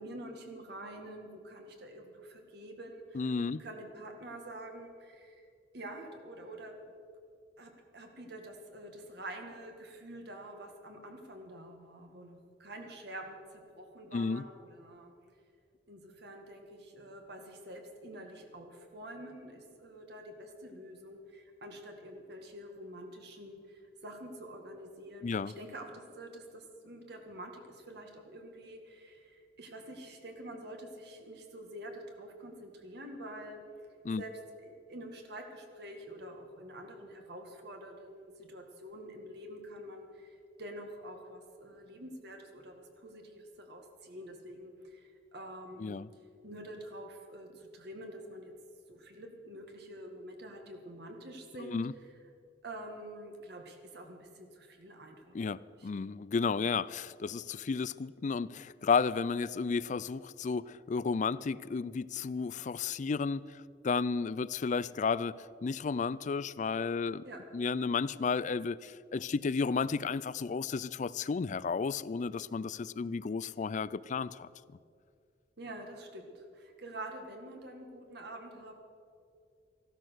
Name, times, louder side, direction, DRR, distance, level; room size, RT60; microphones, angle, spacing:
voice 1, 0.0-5.5 5.7-6.9 7.6-15.1 15.9-33.6 34.2-34.3 34.6-46.0 46.4-48.5 48.9-51.9 52.6-56.1 56.6-56.8 67.2-67.4 75.6-78.7, right 1 dB, 65° right, 3 dB, 1.9 m, -47 dB
voice 2, 3.1-3.6 14.1-14.4 25.2-25.5 34.0-34.2 45.8-46.1 51.6-51.9 55.3-67.2 67.5-74.5, left 5 dB, 45° left, 18 dB, 0.4 m, -33 dB
15.0 x 12.5 x 6.3 m, 2.3 s
head